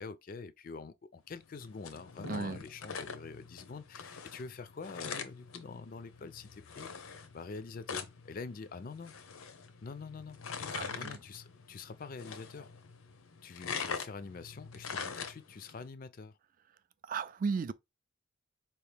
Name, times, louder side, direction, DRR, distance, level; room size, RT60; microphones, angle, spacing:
voice 1, 0.0-9.1 9.8-10.4 10.9-12.7 13.4-16.4, left 4 dB, 45° left, 0.4 m, -46 dB
sound 1, 1.4-15.8, left 6 dB, 90° left, 0.8 m, -44 dB
voice 2, 2.3-2.6 10.7-11.1 17.1-17.7, right 5 dB, 40° right, 0.3 m, -34 dB
4.5 x 2.9 x 3.3 m
head